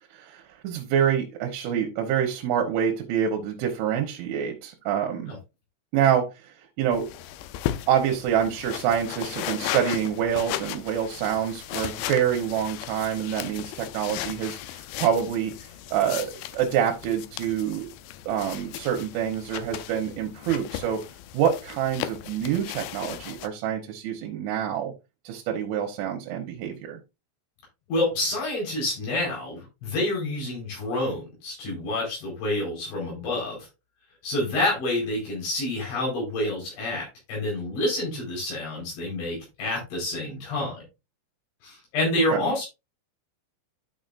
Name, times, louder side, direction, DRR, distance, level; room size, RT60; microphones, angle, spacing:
voice 1, 0.2-5.3 5.9-6.3 6.8-7.1 7.9-15.5 15.9-17.9 18.3-21.0 21.3-24.9 25.3-27.0 42.3-42.5, right 9 dB, 75° right, 2 dB, 3.6 m, -26 dB
sound 1, 6.9-23.5, left 13 dB, 85° left, 2.5 m, -36 dB
voice 2, 27.9-33.7 34.2-40.8 41.6-42.7, left 1 dB, 70° left, -4 dB, 6.8 m, -28 dB
12.0 x 6.1 x 2.5 m, 0.25 s
omnidirectional pair, 5.7 m